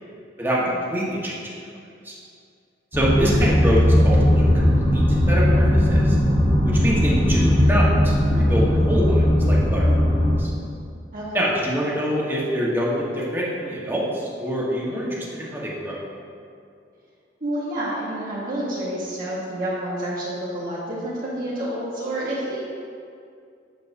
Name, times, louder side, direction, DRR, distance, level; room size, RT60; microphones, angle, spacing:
voice 1, 0.9-1.4 2.0-2.1 2.9-6.2 6.6-9.9 10.4-10.5 11.3-16.0, equal, 10° right, -5 dB, 1.1 m, -25 dB
sound 1, 2.9-10.4, left 1 dB, 25° left, 1.1 m, -18 dB
voice 2, 11.1-11.5 17.4-22.7, right 1 dB, 50° right, -8 dB, 1.1 m, -29 dB
7.9 x 6.6 x 2.6 m, 2.4 s
head